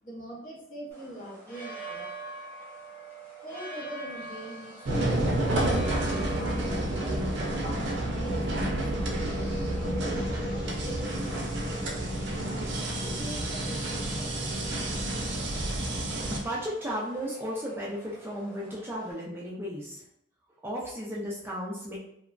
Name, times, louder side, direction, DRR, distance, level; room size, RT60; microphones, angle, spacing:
voice 1, 0.0-2.3 3.4-7.4 8.1-12.2 12.9-15.3, right 1 dB, 45° left, -4 dB, 0.8 m, -43 dB
sound 1, 0.9-19.1, right 2 dB, 10° left, 0.9 m, -46 dB
sound 2, 4.9-16.4, right 1 dB, 70° right, 0.5 m, -29 dB
sound 3, 10.1-16.7, left 1 dB, 80° left, 1.1 m, -48 dB
voice 2, 16.3-20.0 20.6-22.0, equal, 10° right, -5 dB, 0.3 m, -34 dB
2.8 x 2.2 x 2.4 m, 0.74 s
head